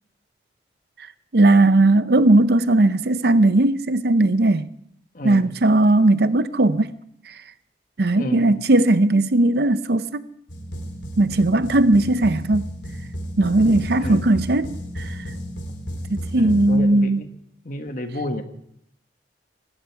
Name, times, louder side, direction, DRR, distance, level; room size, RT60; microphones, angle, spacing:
voice 1, 1.3-4.7 5.2-6.9 7.3-7.4 8.0-10.2 11.2-12.6 13.4-15.2 16.1-17.2, right 2 dB, 60° right, 0.7 m, -18 dB
voice 2, 5.1-5.6 8.1-8.6 14.0-14.4 16.3-17.3 17.6-18.4, left 1 dB, 45° left, 1.5 m, -31 dB
sound 1, 10.5-16.8, equal, 90° left, 3.4 m, -33 dB
19.5 x 15.5 x 4.7 m
head